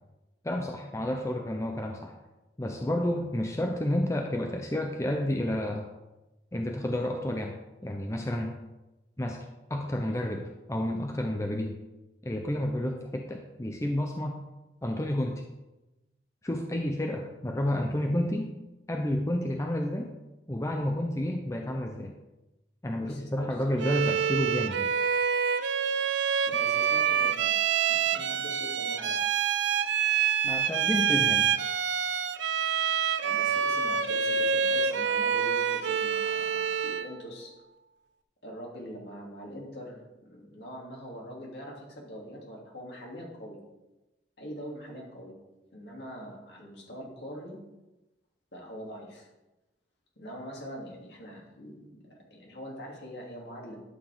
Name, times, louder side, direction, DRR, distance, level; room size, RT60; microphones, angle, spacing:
voice 1, 0.4-2.2 2.6-5.9 6.5-7.6 7.8-8.6 9.2-11.8 12.2-14.4 14.8-15.4 16.4-18.5 18.9-20.1 20.5-22.2 22.8-24.9 30.4-31.5, left 1 dB, 15° left, 2 dB, 0.6 m, -30 dB
voice 2, 23.0-23.9 26.4-27.6 27.9-29.3 33.2-37.5 38.4-43.6 44.4-45.3 45.7-47.6 48.5-49.3 50.2-53.8, equal, 65° left, -2 dB, 2.8 m, -43 dB
Bowed string instrument, 23.8-37.2, right 7 dB, 75° right, 0.5 m, -27 dB
11.5 x 7.6 x 3.6 m, 1.0 s
head